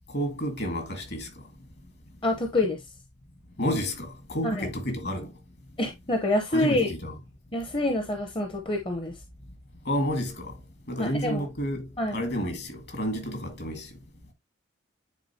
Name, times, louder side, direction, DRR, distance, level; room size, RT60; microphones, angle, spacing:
voice 1, 0.1-1.3 3.6-5.3 6.5-7.2 9.9-10.5 10.9-13.9, equal, 55° left, 1.9 m, -30 dB
voice 2, 2.2-2.8 4.4-4.7 5.8-6.9 7.5-9.1 11.0-11.5 12.0-12.2, left 1 dB, 25° left, 0.8 m, -27 dB
9.2 x 3.7 x 2.8 m
head